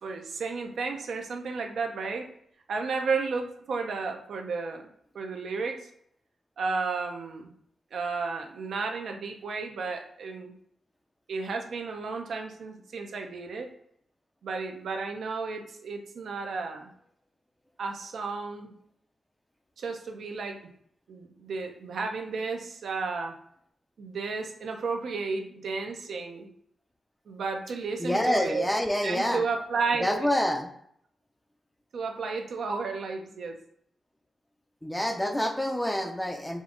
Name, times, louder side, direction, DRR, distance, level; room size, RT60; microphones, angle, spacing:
voice 1, 0.0-2.3 2.7-4.9 5.1-5.8 6.6-7.5 7.9-10.5 11.3-13.7 14.4-16.9 17.8-18.7 19.8-20.6 21.1-23.3 24.0-26.5 27.3-28.7 29.0-30.3 31.9-33.6, right 4 dB, 70° right, 3 dB, 0.6 m, -33 dB
voice 2, 28.0-29.4 30.0-30.7 34.8-36.6, left 1 dB, 5° left, 5 dB, 0.4 m, -27 dB
5.0 x 2.5 x 3.7 m, 0.68 s
wide cardioid pair, 140°, 0 cm